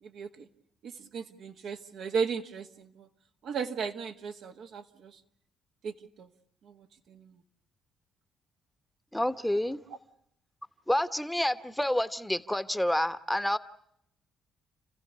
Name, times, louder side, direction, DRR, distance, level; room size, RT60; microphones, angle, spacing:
voice 1, 0.0-0.5 0.8-3.1 3.4-5.2 5.8-6.3 6.6-7.4, right 6 dB, 70° right, 1.8 m, -36 dB
voice 2, 9.1-9.8 10.9-13.6, left 1 dB, 5° left, 1.1 m, -28 dB
30.0 x 15.5 x 8.2 m
supercardioid pair, 70°, 0 cm